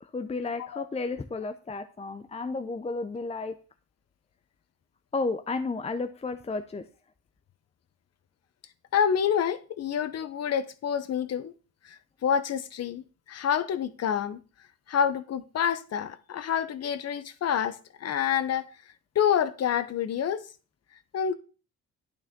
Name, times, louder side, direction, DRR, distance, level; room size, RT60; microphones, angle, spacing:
voice 1, 0.1-3.5 5.1-6.8, left 3 dB, 20° left, 0.7 m, -32 dB
voice 2, 8.9-11.5 11.8-14.4 14.9-18.7 19.1-20.4 21.1-21.3, left 8 dB, 55° left, 0.9 m, -28 dB
9.0 x 8.8 x 3.7 m
cardioid pair, 90°, 30 cm